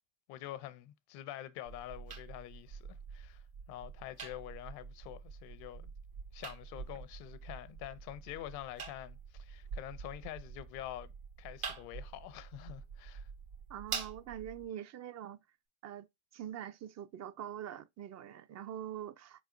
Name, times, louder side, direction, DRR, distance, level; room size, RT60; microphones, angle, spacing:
voice 1, 0.3-5.9 6.3-11.1 11.4-13.3, left 13 dB, 75° left, 0.6 m, -46 dB
sound 1, 1.7-14.7, right 6 dB, 75° right, 1.6 m, -46 dB
voice 2, 13.7-15.4 15.8-16.1 16.3-19.4, right 10 dB, 45° right, 0.5 m, -44 dB
4.5 x 4.1 x 2.5 m
supercardioid pair, 75°, 37 cm